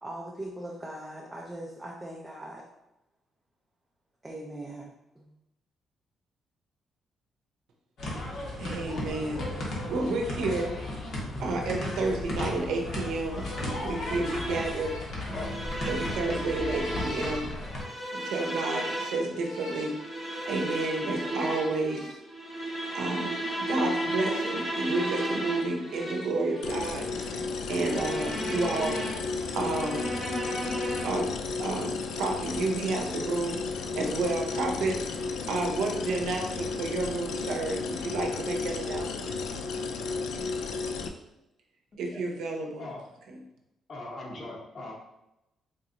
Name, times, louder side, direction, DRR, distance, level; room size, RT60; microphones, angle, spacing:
voice 1, 0.0-2.7 4.2-5.3, right 1 dB, 10° right, -2 dB, 0.4 m, -40 dB
sound 1, 8.0-17.8, left 1 dB, 55° left, 0.9 m, -35 dB
voice 2, 8.6-10.8 11.4-15.0 15.9-17.5 18.1-20.0 20.4-22.2 22.9-27.1 27.7-29.1 29.5-30.1 31.0-31.3 31.6-35.0 35.5-39.3 42.0-42.9 43.3-43.4, right 3 dB, 80° right, 1 dB, 0.6 m, -31 dB
sound 2, 13.3-31.3, right 1 dB, 15° left, 0.9 m, -35 dB
sound 3, 26.6-41.1, left 4 dB, 80° left, 0.3 m, -33 dB
voice 3, 41.9-42.2 42.8-43.0 43.9-44.9, left 2 dB, 35° left, -1 dB, 0.8 m, -41 dB
3.9 x 2.9 x 2.5 m, 0.90 s
cardioid pair, 165°, 0 cm